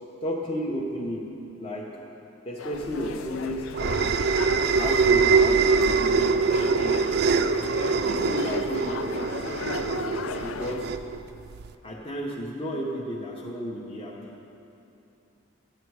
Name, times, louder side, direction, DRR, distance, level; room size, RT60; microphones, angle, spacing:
voice 1, 0.2-2.0 2.4-4.2 4.8-6.5 6.8-7.1 8.0-9.4 10.4-10.9 11.8-14.4, equal, 25° left, -3 dB, 0.8 m, -33 dB
sound 1, 2.6-10.9, left 5 dB, 75° left, 0.4 m, -36 dB
sound 2, 2.9-11.7, right 5 dB, 50° right, 0.3 m, -24 dB
11.5 x 9.1 x 4.7 m, 2.8 s
head